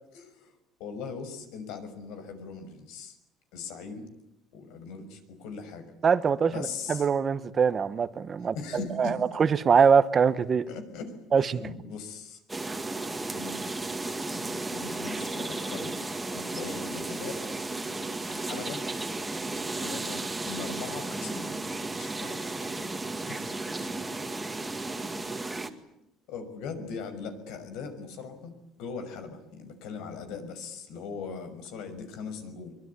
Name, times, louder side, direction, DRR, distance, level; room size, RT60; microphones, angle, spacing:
voice 1, 0.1-0.5 0.8-3.2 3.5-4.1 4.5-5.9 6.4-7.1 8.5-9.2 10.7-11.2 11.4-12.4 13.3-13.6 14.3-16.0 16.3-17.4 18.2-18.9 19.8-22.5 23.3-23.9 25.5-28.5 28.8-32.7, left 5 dB, 75° left, 6.0 m, -40 dB
voice 2, 6.0-8.5 9.0-10.6 11.3-11.6, right 6 dB, 30° right, 1.1 m, -23 dB
sound 1, 12.5-25.7, right 2 dB, 10° right, 2.0 m, -34 dB
24.0 x 23.5 x 9.7 m
cardioid pair, 150°, 0 cm